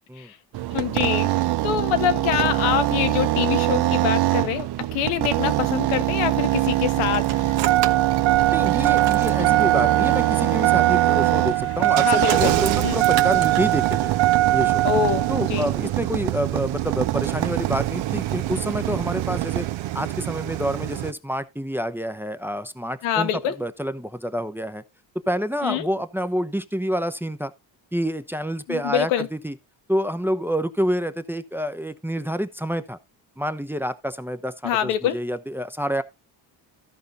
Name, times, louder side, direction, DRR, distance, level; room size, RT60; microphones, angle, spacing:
sound 1, 0.5-19.7, right 16 dB, 55° right, 0.7 m, -25 dB
voice 1, 0.7-1.3 1.6-7.4 12.0-12.6 12.8-13.0 14.8-15.7 23.0-23.6 25.6-25.9 28.7-29.3 34.6-35.2, left 10 dB, 85° left, 1.3 m, -25 dB
Engine starting, 6.0-21.1, right 16 dB, 70° right, 1.2 m, -23 dB
sound 2, 6.4-7.9 9.0-12.5 13.4-16.4, left 4 dB, 30° left, 1.5 m, -44 dB
voice 2, 8.5-14.1 14.5-14.8 15.3-19.7 19.9-24.8 25.3-27.5 27.9-29.5 29.9-33.0 33.4-36.0, equal, 5° right, 0.8 m, -28 dB
14.0 x 5.1 x 4.1 m
supercardioid pair, 75°, 47 cm